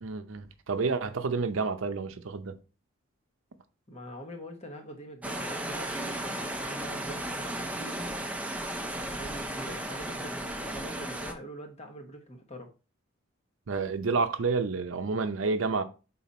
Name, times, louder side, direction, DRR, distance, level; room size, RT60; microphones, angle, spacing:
voice 1, 0.0-2.6 13.7-15.8, right 4 dB, 75° right, 0.6 m, -29 dB
voice 2, 3.9-8.1 9.0-12.7, equal, 30° left, 1.2 m, -44 dB
sound 1, 5.2-11.3, right 1 dB, 5° right, 0.6 m, -35 dB
5.8 x 4.0 x 4.2 m
head